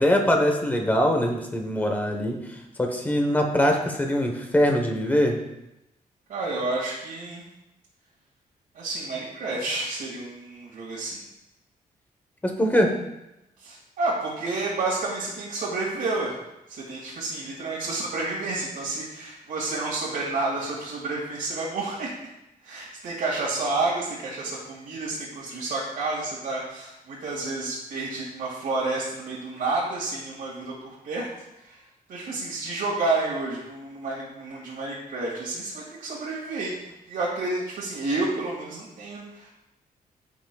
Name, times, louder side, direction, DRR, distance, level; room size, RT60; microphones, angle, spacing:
voice 1, 0.0-5.4 12.4-12.9, equal, 10° left, 2 dB, 1.1 m, -23 dB
voice 2, 6.3-7.4 8.7-11.2 13.6-16.4 16.7-22.1 22.6-31.3 31.6-39.5, right 3 dB, 80° right, -6 dB, 2.2 m, -30 dB
14.0 x 5.9 x 2.3 m, 0.92 s
wide cardioid pair, 175°, 15 cm